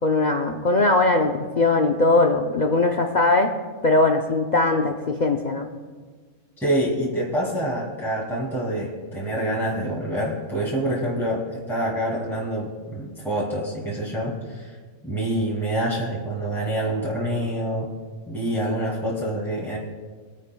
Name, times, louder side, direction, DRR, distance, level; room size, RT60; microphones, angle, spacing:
voice 1, 0.0-3.5 3.8-5.7, left 2 dB, 55° left, 3 dB, 0.5 m, -20 dB
voice 2, 6.6-14.8 15.0-17.9 18.3-19.8, right 1 dB, ahead, -6 dB, 2.4 m, -26 dB
23.5 x 9.6 x 2.3 m, 1.5 s
omnidirectional pair, 1.5 m